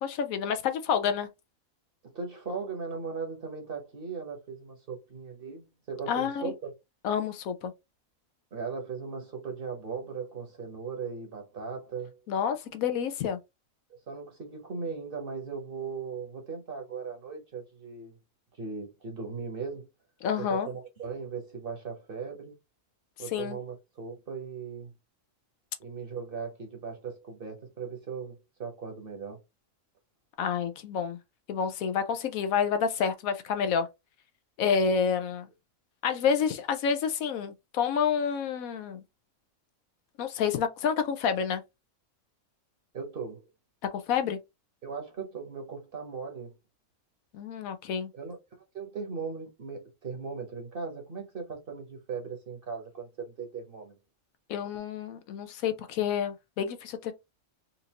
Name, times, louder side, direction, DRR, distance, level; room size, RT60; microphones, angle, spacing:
voice 1, 0.0-1.3 6.1-6.5 7.0-7.7 12.3-13.4 20.2-20.7 23.3-23.6 30.4-31.2 31.5-33.9 34.6-35.5 36.0-39.0 40.2-41.6 44.1-44.4 47.3-48.1 54.5-57.1, left 7 dB, 80° left, 1.1 m, -28 dB
voice 2, 2.0-6.7 8.5-12.2 13.9-18.2 18.5-19.9 20.4-22.5 23.2-24.9 25.8-29.4 42.9-43.4 44.8-46.5 48.1-48.4 48.7-54.0, right 5 dB, 45° right, 1.1 m, -38 dB
4.2 x 2.6 x 2.8 m
omnidirectional pair, 1.4 m